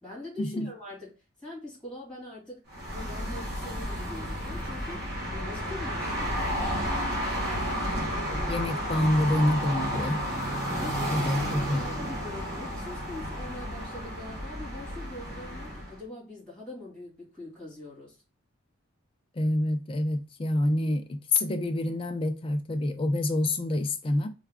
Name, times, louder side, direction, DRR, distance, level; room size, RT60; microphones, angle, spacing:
voice 1, 0.0-2.6 2.9-6.5 10.7-18.2, left 2 dB, 5° left, 2.1 m, -43 dB
sound 1, 2.7-16.0, equal, 50° right, 1.4 m, -32 dB
voice 2, 8.0-10.2 11.1-11.9 19.4-24.3, left 1 dB, 25° left, 0.3 m, -27 dB
3.3 x 2.3 x 3.5 m
head